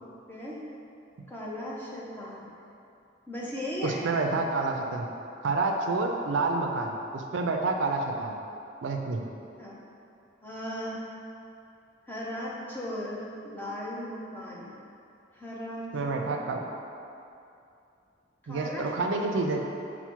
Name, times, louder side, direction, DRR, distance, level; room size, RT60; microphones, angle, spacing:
voice 1, 0.0-0.6 1.3-2.5 3.3-4.0 9.6-9.8 10.4-11.0 12.1-14.7 15.3-16.3 18.4-18.9, equal, 10° left, -6 dB, 0.5 m, -37 dB
voice 2, 3.8-5.1 5.4-8.4 8.8-9.2 15.9-16.6 18.5-19.6, right 3 dB, 75° right, 2 dB, 0.4 m, -28 dB
5.5 x 2.1 x 4.4 m, 2.6 s
head